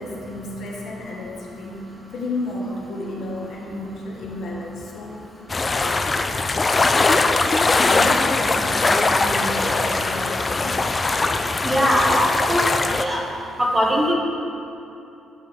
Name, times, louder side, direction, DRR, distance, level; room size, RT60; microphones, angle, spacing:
voice 1, 0.0-5.2 5.7-6.0 6.5-7.1 7.4-10.8, left 2 dB, 65° left, -2 dB, 1.6 m, -32 dB
sound 1, 5.5-13.0, left 3 dB, 25° left, 0.5 m, -20 dB
voice 2, 11.6-13.3 13.6-14.1, equal, 10° right, -1 dB, 1.5 m, -21 dB
8.8 x 5.0 x 7.2 m, 2.8 s
cardioid pair, 90°, 0 cm